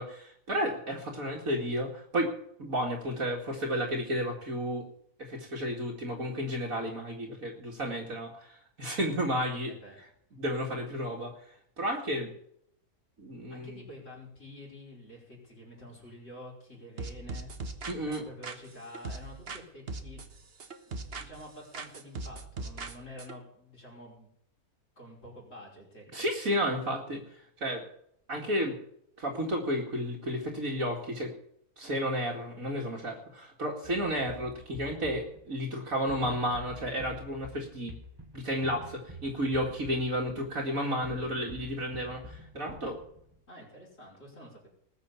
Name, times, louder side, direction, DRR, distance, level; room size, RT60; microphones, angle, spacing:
voice 1, 0.0-2.3 2.6-4.8 5.2-9.7 10.4-12.3 13.2-13.8 17.9-18.2 26.1-27.8 28.3-28.8 29.2-31.3 31.8-37.9 38.3-43.0, equal, 65° right, -2 dB, 2.7 m, -32 dB
voice 2, 13.5-17.5 18.1-20.2 20.9-24.3 25.0-26.3 43.5-44.7, left 1 dB, 45° left, -4 dB, 5.6 m, -48 dB
sound 1, 17.0-19.6 19.9-21.5 21.7-23.3, right 3 dB, 45° right, 1.4 m, -40 dB
sound 2, 33.8-43.4, left 1 dB, 15° right, 1.5 m, -48 dB
20.0 x 6.8 x 8.4 m, 0.70 s
omnidirectional pair, 1.6 m